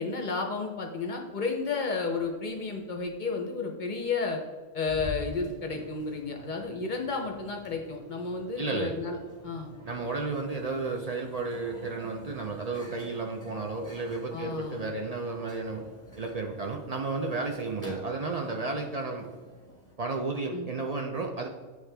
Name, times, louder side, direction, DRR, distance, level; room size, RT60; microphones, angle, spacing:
voice 1, 0.0-4.4 4.7-9.2 9.4-9.7 14.3-14.8 20.5-20.7, left 4 dB, 45° left, 2 dB, 0.7 m, -32 dB
Microwave oven, 4.9-19.9, equal, 15° left, 1.4 m, -48 dB
voice 2, 8.6-8.9 9.9-15.8 16.2-19.3 20.0-21.5, right 3 dB, 55° right, 2 dB, 0.4 m, -32 dB
9.0 x 3.2 x 3.3 m, 1.4 s
omnidirectional pair, 1.3 m